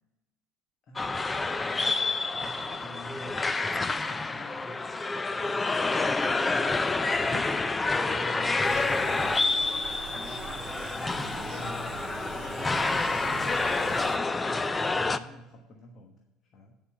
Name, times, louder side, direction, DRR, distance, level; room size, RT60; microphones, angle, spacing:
voice 1, 0.9-3.4 4.1-4.9 5.3-6.8 7.1-7.5 7.9-12.8 14.8-16.2 16.5-16.7, left 1 dB, 45° left, 2 dB, 1.3 m, -48 dB
sound 1, 1.0-15.2, left 3 dB, 15° left, 0.4 m, -28 dB
voice 2, 7.2-7.7 13.2-15.2, right 4 dB, 90° right, -1 dB, 0.9 m, -47 dB
sound 2, 8.6-14.2, right 15 dB, 70° right, 0.3 m, -43 dB
9.8 x 5.3 x 7.1 m, 0.99 s
supercardioid pair, 110°, 0 cm